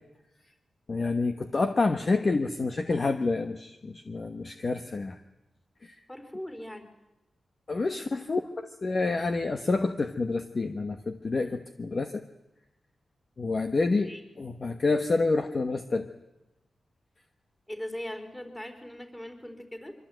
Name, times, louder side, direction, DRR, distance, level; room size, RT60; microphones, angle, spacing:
voice 1, 0.9-5.2 5.8-6.0 7.7-12.2 13.4-16.1, left 3 dB, 35° left, 7 dB, 1.2 m, -28 dB
voice 2, 6.1-6.9 13.8-14.2 17.7-19.9, left 1 dB, 10° left, 6 dB, 4.1 m, -40 dB
25.0 x 24.5 x 9.2 m, 0.94 s
wide cardioid pair, 175°, 0 cm